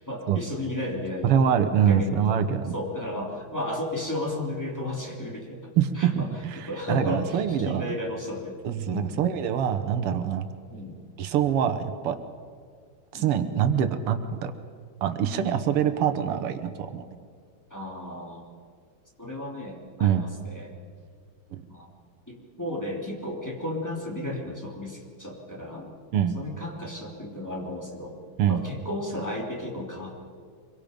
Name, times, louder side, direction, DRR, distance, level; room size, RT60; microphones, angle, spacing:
voice 1, 0.0-1.5 1.8-2.4 2.7-5.6 5.9-8.6 8.9-9.2 10.7-11.0 13.1-13.3 17.7-18.5 19.2-20.7 21.7-21.9 22.3-25.9 26.3-28.2 28.5-30.2, left 1 dB, 10° left, -3 dB, 3.1 m, -34 dB
voice 2, 1.2-2.7 5.8-7.9 8.6-10.5 11.2-12.2 13.1-14.5 15.0-17.0 20.0-20.2 21.5-21.6 26.1-26.4 28.4-28.6, right 8 dB, 90° right, 9 dB, 2.1 m, -24 dB
25.0 x 23.0 x 5.2 m, 2.2 s
omnidirectional pair, 2.4 m